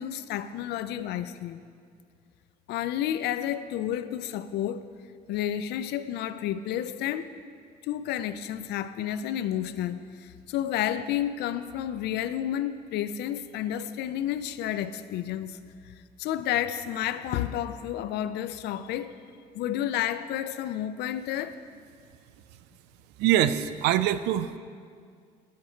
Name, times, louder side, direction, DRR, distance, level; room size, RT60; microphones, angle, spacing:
voice 1, 0.0-1.6 2.7-4.9 5.3-7.3 7.8-15.6 15.8-19.1 19.5-21.6, left 11 dB, 75° left, 12 dB, 0.5 m, -31 dB
voice 2, 23.2-24.6, right 11 dB, 90° right, 14 dB, 0.4 m, -24 dB
11.0 x 8.6 x 4.5 m, 2.2 s
cardioid pair, 110°, 17 cm